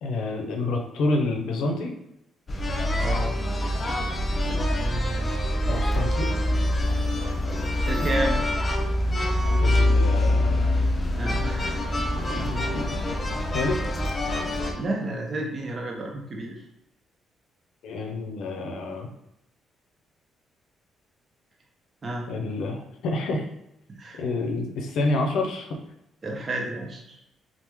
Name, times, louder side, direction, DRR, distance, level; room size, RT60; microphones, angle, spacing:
voice 1, 0.0-1.9 5.7-6.4 9.6-10.7 12.1-13.1 13.5-13.8 17.8-19.1 22.3-23.5 24.2-25.8, left 2 dB, 80° left, 3 dB, 0.5 m, -28 dB
sound 1, 2.5-14.7, left 1 dB, 30° left, 0.5 m, -25 dB
voice 2, 3.0-3.3 4.4-5.5 7.9-8.4 11.2-11.7 14.8-16.6 22.0-22.3 23.9-24.2 26.2-27.2, right 1 dB, 35° right, 0 dB, 0.6 m, -31 dB
3.0 x 2.0 x 3.4 m, 0.83 s
cardioid pair, 90°, 0 cm